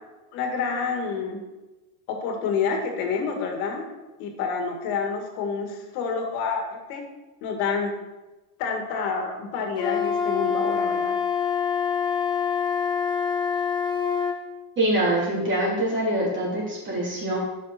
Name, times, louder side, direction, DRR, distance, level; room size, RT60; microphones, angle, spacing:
voice 1, 0.3-1.4 2.1-3.8 4.2-7.0 7.4-7.9 8.6-11.2, left 5 dB, 55° left, 3 dB, 2.0 m, -28 dB
Wind instrument woodwind instrument, 9.8-14.4, left 7 dB, 10° left, 0.3 m, -25 dB
voice 2, 14.8-17.4, right 1 dB, 25° right, -6 dB, 3.3 m, -24 dB
11.5 x 5.9 x 4.3 m, 1.1 s
cardioid pair, 165°, 46 cm